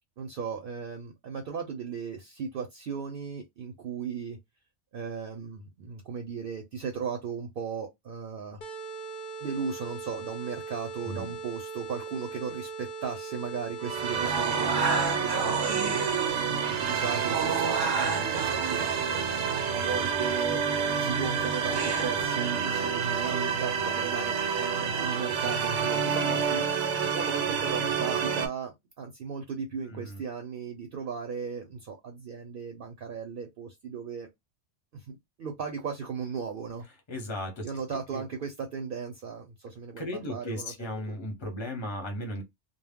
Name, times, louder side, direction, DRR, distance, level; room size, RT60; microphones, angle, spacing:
voice 1, 0.2-4.4 4.9-8.6 9.4-19.2 19.7-20.6 21.0-34.3 34.9-36.9 37.6-41.2, right 6 dB, 60° right, 0.7 m, -36 dB
sound 1, 8.6-14.6, right 4 dB, 60° left, 0.7 m, -40 dB
sound 2, 13.8-28.5, right 6 dB, 80° right, 0.9 m, -28 dB
sound 3, 14.2-22.3, right 4 dB, 45° right, 0.3 m, -33 dB
voice 2, 29.9-30.2 37.1-37.6 38.1-38.2 40.0-42.4, left 1 dB, 30° left, 0.7 m, -35 dB
2.1 x 2.0 x 3.4 m
omnidirectional pair, 1.2 m